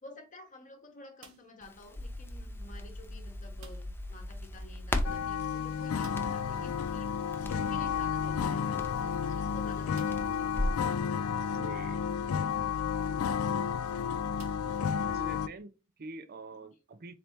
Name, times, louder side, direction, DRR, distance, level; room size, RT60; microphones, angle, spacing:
voice 1, 0.0-7.1 7.5-10.6, left 2 dB, 35° left, 0.9 m, -51 dB
sound 1, 1.2-1.7 3.6-4.1 4.4-4.5 4.8-4.9 6.0-6.5 8.3-8.4 9.0-9.1 9.9-10.4 11.1-11.2 13.3-13.5 14.4-15.2, right 5 dB, 75° right, 1.1 m, -57 dB
Crackle, 1.6-10.9, left 1 dB, 10° left, 0.5 m, -38 dB
sound 2, 5.0-15.5, left 7 dB, 80° left, 0.3 m, -32 dB
voice 2, 11.5-12.0 15.1-17.1, right 3 dB, 45° right, 0.5 m, -46 dB
4.2 x 3.2 x 2.9 m
head